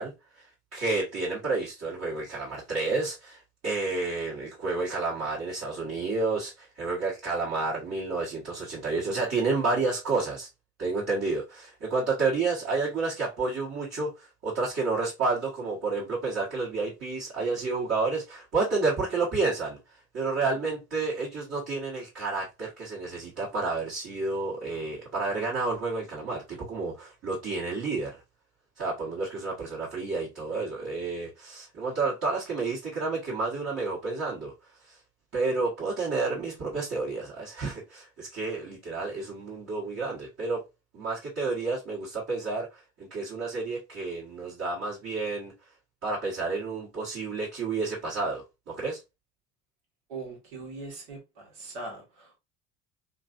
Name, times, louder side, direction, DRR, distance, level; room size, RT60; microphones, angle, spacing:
voice 1, 0.0-10.5 10.8-19.8 20.1-28.2 28.8-34.5 34.8-35.0 35.3-40.6 40.9-42.8 43.1-45.5 46.0-49.0, right 3 dB, 45° right, 1.4 m, -30 dB
voice 2, 50.1-52.4, right 3 dB, 80° right, 1.5 m, -41 dB
3.0 x 2.5 x 2.5 m
hypercardioid pair, 70°, 36 cm